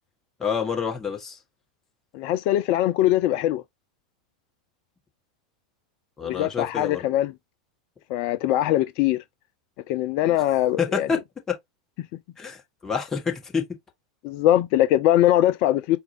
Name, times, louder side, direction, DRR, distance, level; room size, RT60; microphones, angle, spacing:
voice 1, 0.4-1.4 6.2-7.0 10.2-10.4 10.8-11.2 11.5-11.6 12.4-13.6, left 6 dB, 15° left, 1.5 m, -28 dB
voice 2, 2.1-3.6 6.2-7.3 8.1-9.2 9.9-11.1 14.2-16.0, left 13 dB, 45° left, 0.4 m, -21 dB
4.5 x 2.4 x 3.2 m
figure-of-eight pair, 85°, 3 cm